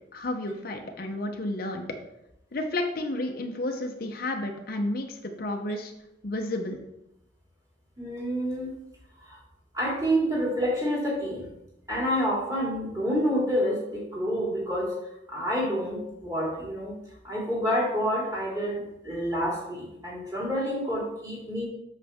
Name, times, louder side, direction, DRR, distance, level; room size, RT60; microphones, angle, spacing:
voice 1, 0.1-1.8 2.5-5.9 6.2-6.8, left 1 dB, 50° left, 4 dB, 0.7 m, -31 dB
voice 2, 8.0-8.7 9.2-9.4 9.7-11.5 11.9-14.9 15.3-17.0 17.2-21.7, equal, 20° right, -4 dB, 2.5 m, -28 dB
7.7 x 6.6 x 3.5 m, 0.84 s
head